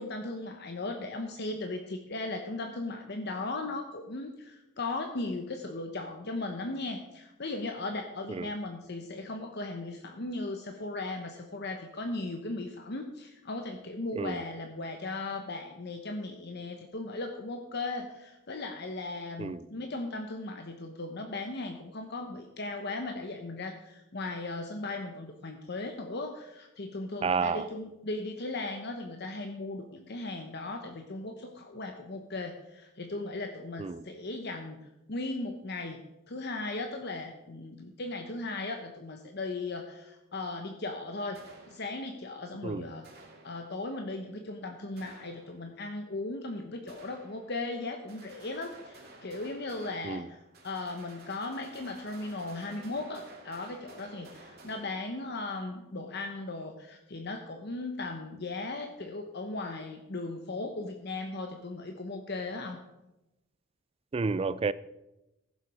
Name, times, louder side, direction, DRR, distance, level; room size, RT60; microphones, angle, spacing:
voice 1, 0.0-34.8 35.1-36.0 36.3-43.0 43.4-62.8, left 2 dB, 55° left, 0.9 m, -37 dB
voice 2, 27.2-27.7 33.8-34.0 42.6-42.9 50.0-50.2 64.1-64.7, right 4 dB, 30° right, 0.3 m, -30 dB
sound 1, 41.3-42.3 43.0-44.0 45.0-45.9 46.9-47.8 48.1-55.6, right 2 dB, 50° right, 2.3 m, -53 dB
15.0 x 7.4 x 4.8 m
head